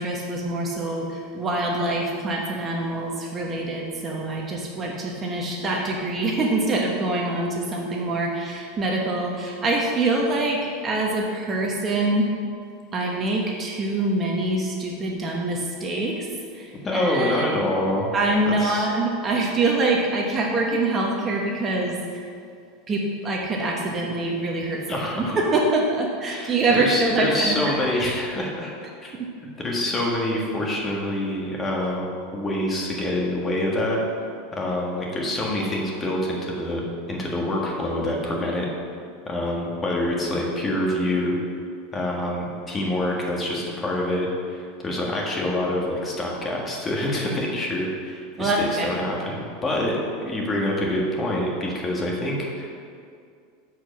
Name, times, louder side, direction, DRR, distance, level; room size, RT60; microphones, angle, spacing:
voice 1, 0.0-12.3 12.9-16.3 16.5-17.7 18.1-22.3 22.9-27.6 27.9-28.0 29.2-29.3 48.4-48.9, right 2 dB, 25° right, -1 dB, 1.0 m, -25 dB
voice 2, 16.8-18.1 18.5-18.9 24.9-25.4 26.3-28.7 29.0-29.1 29.6-32.1 32.3-34.0 34.5-36.8 37.1-38.7 39.3-41.4 41.9-52.7, left 1 dB, 25° left, -2 dB, 1.7 m, -26 dB
7.6 x 4.8 x 6.1 m, 2.3 s
supercardioid pair, 120°, 0 cm